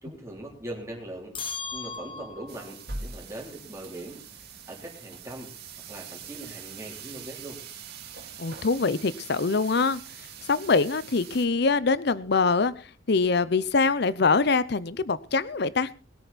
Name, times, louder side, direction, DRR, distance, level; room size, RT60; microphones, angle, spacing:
voice 1, 0.0-1.4 1.7-5.5 5.9-7.6, right 1 dB, 15° right, -1 dB, 3.6 m, -41 dB
sound 1, 1.3-2.7, left 5 dB, 25° left, 1.4 m, -36 dB
sound 2, 2.5-11.5, right 5 dB, 50° right, 2.4 m, -43 dB
voice 2, 8.4-10.0 10.4-12.7 13.1-15.9, left 4 dB, 55° left, 17 dB, 0.7 m, -24 dB
20.5 x 9.0 x 4.1 m, 0.37 s
head